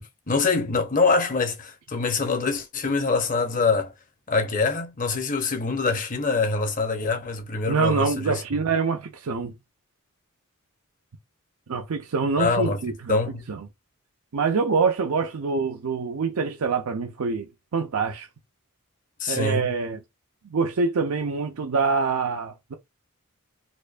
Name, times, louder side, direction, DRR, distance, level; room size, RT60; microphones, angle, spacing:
voice 1, 0.3-3.9 4.3-8.4 12.4-12.8 13.1-13.4 19.2-19.7, left 4 dB, 40° left, 0.8 m, -24 dB
voice 2, 7.7-9.5 11.7-13.2 13.5-13.7 14.3-18.3 19.3-20.0 20.4-22.7, right 4 dB, 75° right, 0.5 m, -25 dB
4.3 x 2.6 x 2.4 m
head